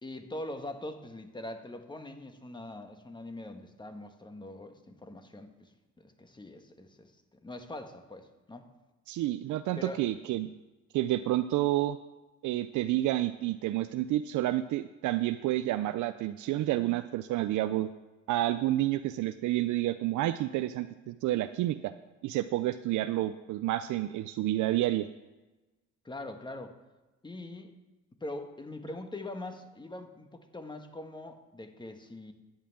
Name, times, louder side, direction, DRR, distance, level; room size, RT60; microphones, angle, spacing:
voice 1, 0.0-7.1 7.4-8.7 9.8-10.0 26.0-26.7 27.2-27.8 28.2-32.3, left 1 dB, 15° left, 6 dB, 1.3 m, -42 dB
voice 2, 9.1-10.5 10.9-12.0 12.4-17.9 18.3-21.9 22.2-25.1, right 15 dB, 80° right, 11 dB, 0.4 m, -29 dB
10.5 x 5.7 x 8.5 m, 1.1 s
cardioid pair, 90°, 30 cm